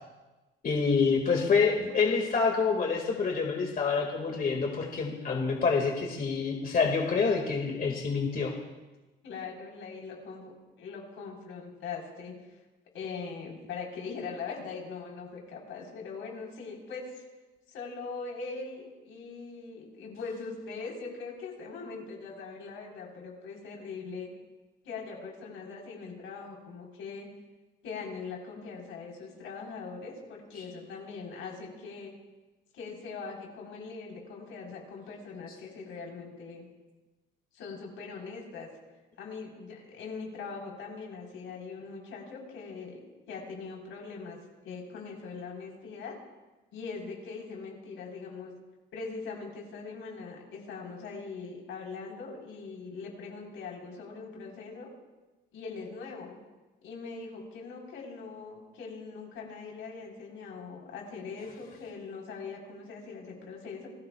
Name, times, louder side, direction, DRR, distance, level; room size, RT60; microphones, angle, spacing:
voice 1, 0.6-8.5, left 5 dB, 45° left, 1 dB, 2.0 m, -27 dB
voice 2, 9.2-12.4 12.9-17.2 17.7-24.3 24.8-27.3 27.8-32.1 32.7-36.6 37.5-38.7 39.2-43.0 43.3-44.4 44.6-46.2 46.7-48.5 48.9-54.9 55.5-56.4 56.8-63.9, left 4 dB, 85° left, -1 dB, 4.0 m, -41 dB
27.5 x 14.5 x 2.3 m, 1.1 s
cardioid pair, 90°, 20 cm